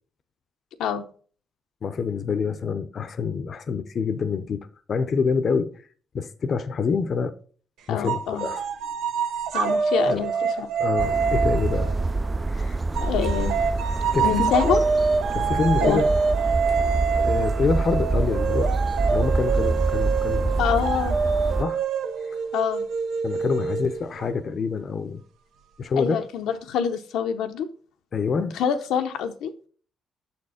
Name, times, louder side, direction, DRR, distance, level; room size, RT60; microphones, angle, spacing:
voice 1, 1.8-5.9 6.1-7.3 7.9-8.7 10.0-10.2 10.8-11.9 12.5-12.8 14.1-14.8 15.3-16.1 16.7-16.8 17.2-18.7 19.1-20.5 21.6-21.8 23.2-25.2 25.8-26.3 28.1-28.5, left 5 dB, 50° left, 0.6 m, -26 dB
voice 2, 7.9-8.5 9.5-10.7 13.0-13.6 14.2-14.8 15.8-16.0 20.6-21.2 22.5-22.9 26.0-27.7 28.5-29.5, left 8 dB, 85° left, 0.7 m, -26 dB
sound 1, 8.1-12.4 12.9-24.3, right 5 dB, 85° right, 0.8 m, -26 dB
sound 2, 11.0-21.6, right 3 dB, 20° right, 0.3 m, -26 dB
6.5 x 4.3 x 4.9 m
cardioid pair, 90°, 0 cm